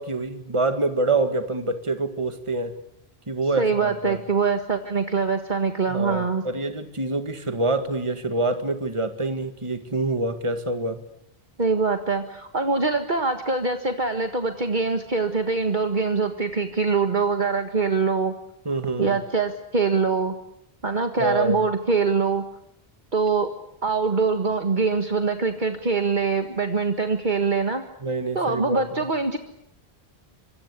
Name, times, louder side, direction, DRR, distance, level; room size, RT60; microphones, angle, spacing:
voice 1, 0.0-2.8 3.3-4.2 5.9-11.0 18.7-19.2 21.2-21.6 28.0-28.8, right 2 dB, 30° right, 8 dB, 1.9 m, -26 dB
voice 2, 3.6-6.4 11.6-18.3 19.0-20.3 20.8-22.4 23.1-23.5 23.8-27.8 28.3-29.4, right 4 dB, 50° right, 6 dB, 1.8 m, -23 dB
26.0 x 25.0 x 8.4 m, 0.75 s
omnidirectional pair, 1.1 m